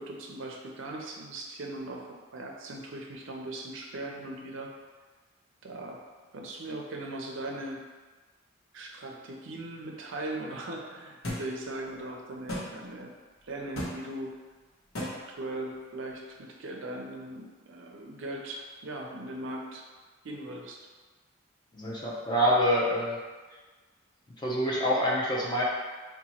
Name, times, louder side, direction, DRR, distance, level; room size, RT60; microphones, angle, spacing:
voice 1, 0.0-4.7 5.6-6.0 6.3-7.8 8.7-13.1 13.4-14.3 15.1-19.8 20.2-20.8, right 1 dB, 60° right, 0 dB, 0.5 m, -39 dB
sound 1, 11.2-11.4 12.5-12.7 13.8-13.9 15.0-15.1, equal, 80° left, 0.9 m, -32 dB
voice 2, 21.7-23.2 24.4-25.6, equal, 20° left, -5 dB, 0.5 m, -26 dB
2.9 x 2.2 x 4.1 m, 1.3 s
head